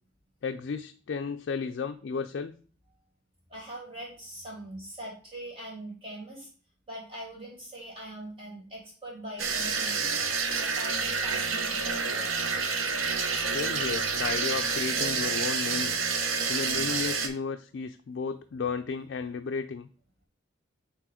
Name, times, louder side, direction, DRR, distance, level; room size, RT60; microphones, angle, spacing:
voice 1, 0.4-2.5 13.5-16.0 16.5-19.9, left 5 dB, 60° left, 7 dB, 0.3 m, -33 dB
voice 2, 3.5-6.5 6.9-10.2 10.6-12.3, right 1 dB, 25° right, -3 dB, 2.6 m, -42 dB
sound 1, 9.4-17.3, right 5 dB, 90° right, 0.9 m, -28 dB
8.5 x 3.0 x 4.9 m, 0.42 s
head